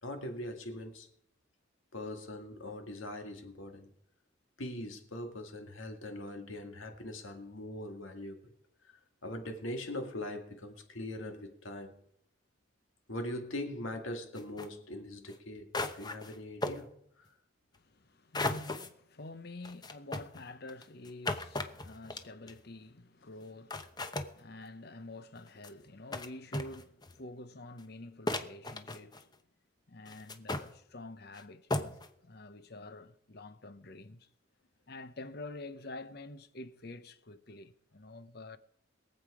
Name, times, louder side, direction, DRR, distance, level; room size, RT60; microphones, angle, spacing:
voice 1, 0.0-1.1 1.9-3.9 4.6-8.5 9.2-12.0 13.1-15.7 15.9-17.3 32.8-32.9, left 1 dB, 80° left, 2.1 m, -41 dB
sound 1, 14.3-14.7 15.3-15.4 15.7-16.4 16.6-16.8 18.3-18.9 19.6-22.6 23.4-23.5 23.7-24.3 25.4-25.7 26.1-26.3 26.5-27.2 27.8-27.9 28.3-29.4 30.1-30.7 31.3-31.4 31.7-32.1, left 2 dB, 20° left, 0.8 m, -36 dB
voice 2, 17.7-29.3 29.9-34.3 34.9-38.6, left 2 dB, 50° left, 0.9 m, -48 dB
22.0 x 7.8 x 4.9 m
head